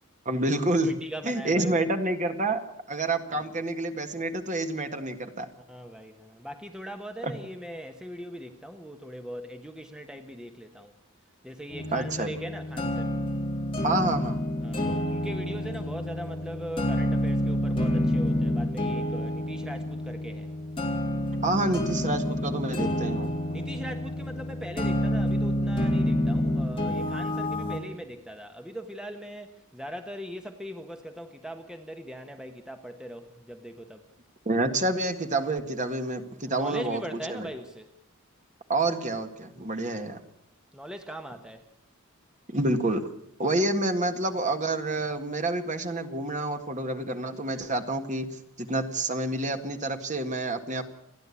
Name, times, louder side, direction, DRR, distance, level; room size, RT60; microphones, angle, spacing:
voice 1, 0.2-1.0 1.2-2.6 2.9-5.5 7.2-7.3 11.9-12.3 13.8-14.4 21.4-23.3 34.4-37.5 38.7-40.2 42.5-43.1 43.4-50.8, right 2 dB, 35° right, 7 dB, 1.7 m, -28 dB
voice 2, 0.8-1.9 3.3-3.4 5.7-10.9 11.4-13.1 14.6-20.5 23.5-34.1 36.5-37.9 40.7-41.6, equal, 5° right, 6 dB, 1.1 m, -40 dB
sound 1, 11.7-27.8, left 1 dB, 25° left, 3.6 m, -28 dB
29.5 x 10.5 x 8.4 m, 0.78 s
head